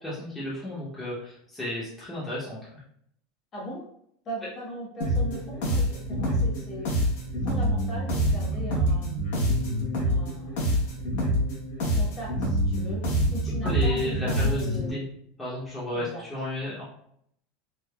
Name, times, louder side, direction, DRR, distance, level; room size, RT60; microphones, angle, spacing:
voice 1, 0.0-2.6 13.6-15.0 15.4-16.8, left 1 dB, 10° left, -9 dB, 0.7 m, -33 dB
voice 2, 3.5-3.9 4.2-6.9 7.4-9.2 10.0-11.1 11.8-15.0 15.9-16.2, right 1 dB, 35° left, -4 dB, 1.1 m, -39 dB
sound 1, 5.0-14.9, equal, 75° left, 1.0 m, -26 dB
3.3 x 2.0 x 2.3 m, 0.69 s
supercardioid pair, 135°, 0 cm